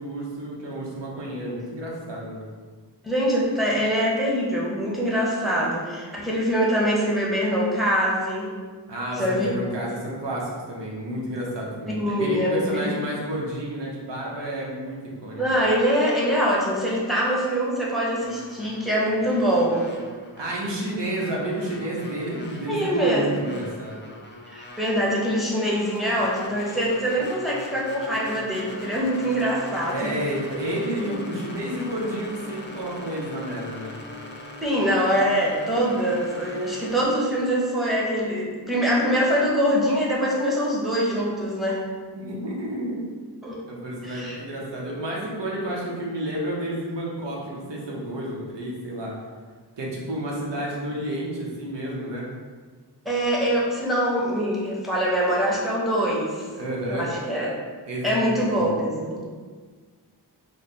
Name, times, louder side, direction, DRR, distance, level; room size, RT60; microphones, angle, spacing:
voice 1, 0.0-2.5 8.9-15.4 20.4-24.1 29.9-34.0 42.1-43.0 43.7-49.1 49.8-52.3 56.5-57.1 57.9-58.6, right 1 dB, 80° right, -4 dB, 0.9 m, -30 dB
voice 2, 3.0-8.5 9.2-9.6 11.9-13.0 15.4-19.9 22.7-23.5 24.5-30.1 31.0-31.2 34.6-41.8 43.4-43.6 44.0-44.4 53.0-56.5 56.9-57.5 58.0-59.2, equal, ahead, -5 dB, 0.8 m, -24 dB
sound 1, 18.2-37.1, left 1 dB, 25° left, 0.4 m, -41 dB
3.3 x 2.1 x 4.1 m, 1.5 s
wide cardioid pair, 80°, 42 cm